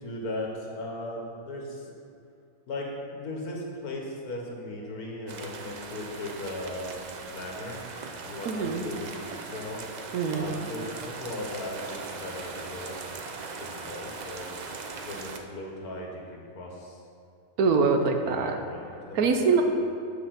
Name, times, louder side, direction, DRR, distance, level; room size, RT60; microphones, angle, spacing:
voice 1, 0.0-1.9 2.7-7.8 8.2-9.8 10.3-13.0 13.6-14.5 15.1-17.0 18.2-19.6, left 1 dB, 90° left, -1 dB, 1.9 m, -37 dB
sound 1, 5.3-15.4, right 4 dB, 65° right, 0.4 m, -40 dB
voice 2, 8.4-8.8 10.1-10.5 17.6-18.6 19.1-19.6, right 4 dB, 80° right, 4 dB, 1.3 m, -24 dB
8.9 x 5.8 x 5.9 m, 2.4 s
omnidirectional pair, 1.5 m